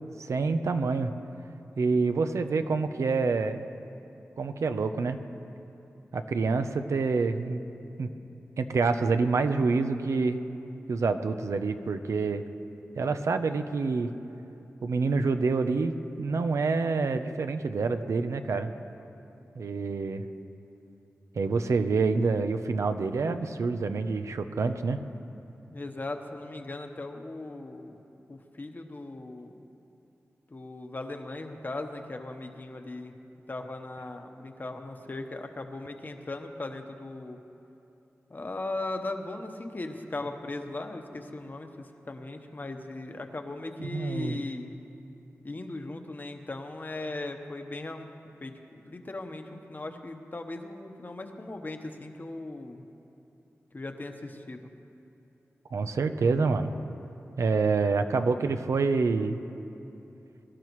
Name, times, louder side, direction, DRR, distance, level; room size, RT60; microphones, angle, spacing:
voice 1, 0.2-1.1 1.8-3.6 4.4-5.2 6.1-7.6 8.0-8.1 8.6-10.4 10.9-12.4 13.0-14.1 14.8-18.7 19.6-20.3 21.4-25.0 43.8-44.4 55.7-56.7 57.4-59.4, right 4 dB, 80° right, 8 dB, 0.6 m, -27 dB
voice 2, 25.7-28.0 28.3-29.6 30.5-33.1 33.5-37.4 38.3-44.7 45.4-48.1 48.4-52.8 53.7-54.6, left 2 dB, 40° left, 5 dB, 1.1 m, -38 dB
22.5 x 12.0 x 3.1 m, 2.9 s
wide cardioid pair, 70°, 5 cm